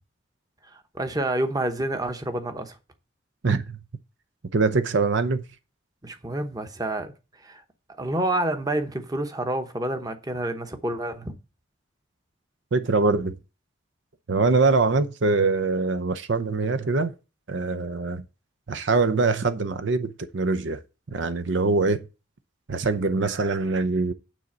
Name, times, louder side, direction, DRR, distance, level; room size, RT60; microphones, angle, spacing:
voice 1, 0.7-2.8 6.0-7.1 7.4-7.6 8.0-11.3, right 1 dB, 20° right, 0.9 m, -28 dB
voice 2, 3.4-3.8 4.5-5.4 12.7-13.4 14.3-17.1 17.5-18.2 18.7-20.8 21.1-22.0 22.7-24.1, right 3 dB, 65° right, 0.6 m, -23 dB
9.2 x 4.0 x 7.3 m
head